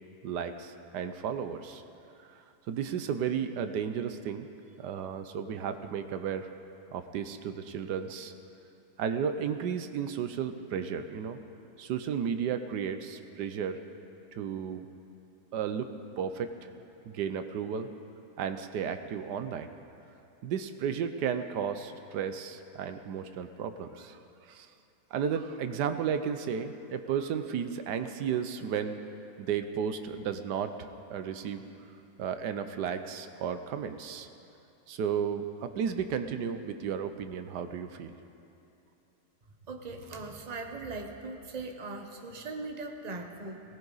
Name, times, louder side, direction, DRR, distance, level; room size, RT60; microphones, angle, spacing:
voice 1, 0.2-1.8 2.7-4.5 4.8-6.5 6.9-8.3 9.0-11.4 11.8-13.8 14.3-14.8 15.5-15.9 16.2-16.5 17.0-17.9 18.4-19.7 20.4-24.2 24.5-24.7 25.1-29.0 29.4-31.6 32.2-34.3 34.9-38.1, right 7 dB, 90° right, 9 dB, 1.4 m, -33 dB
voice 2, 39.7-43.6, right 3 dB, 30° right, 4 dB, 1.0 m, -40 dB
19.0 x 18.0 x 4.0 m, 2.9 s
omnidirectional pair, 1.7 m